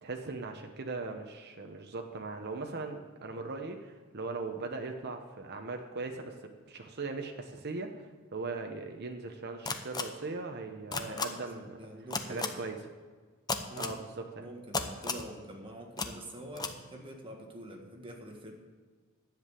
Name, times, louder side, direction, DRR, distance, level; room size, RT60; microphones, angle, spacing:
voice 1, 0.0-6.4 6.7-11.9 12.3-12.8 13.8-14.5, right 3 dB, 50° right, 4 dB, 0.9 m, -39 dB
sound 1, 9.7-10.0 10.9-11.3 12.1-12.5 13.5-13.9 14.7-15.3 16.0-16.1 16.6-16.7, left 4 dB, 20° left, 0.7 m, -32 dB
voice 2, 10.9-12.6 13.7-14.0 14.4-18.5, right 1 dB, 25° right, 1 dB, 1.7 m, -46 dB
10.5 x 7.6 x 8.3 m, 1.4 s
head